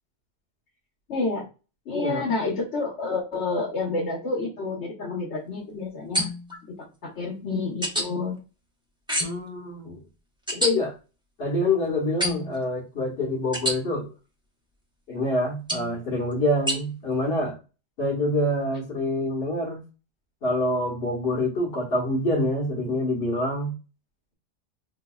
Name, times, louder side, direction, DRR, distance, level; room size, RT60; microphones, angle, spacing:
voice 1, 1.1-1.4 1.9-6.3 6.8-8.4, left 3 dB, 85° left, -3 dB, 1.3 m, -29 dB
voice 2, 1.9-2.2 9.2-10.0 10.5-10.9 11.4-14.1 15.1-17.6 18.0-19.8 20.4-23.7, left 1 dB, 65° left, -5 dB, 1.3 m, -26 dB
sound 1, 6.1-6.6 7.8-8.1 9.1-9.5 10.5-10.7 12.2-12.6 13.5-13.8 15.7-15.9 16.7-16.8, equal, 5° right, 0.7 m, -26 dB
5.1 x 2.8 x 2.3 m, 0.32 s
omnidirectional pair, 1.1 m